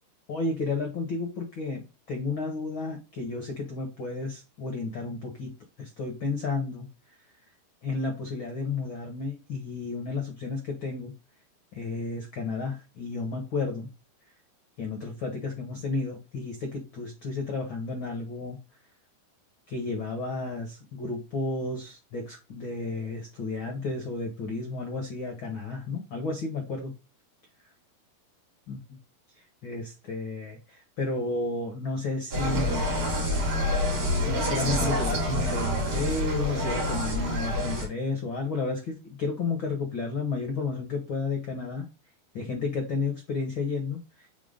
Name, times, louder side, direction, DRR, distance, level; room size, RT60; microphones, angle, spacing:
voice 1, 0.3-6.9 7.8-11.1 11.7-13.9 14.8-18.6 19.7-26.9 28.7-28.8 29.6-32.9 34.2-41.9 42.3-44.3, left 3 dB, 80° left, 2 dB, 1.1 m, -32 dB
Insect, 32.3-37.9, left 1 dB, 40° right, 2.5 m, -27 dB
6.0 x 4.4 x 3.8 m, 0.28 s
omnidirectional pair, 4.7 m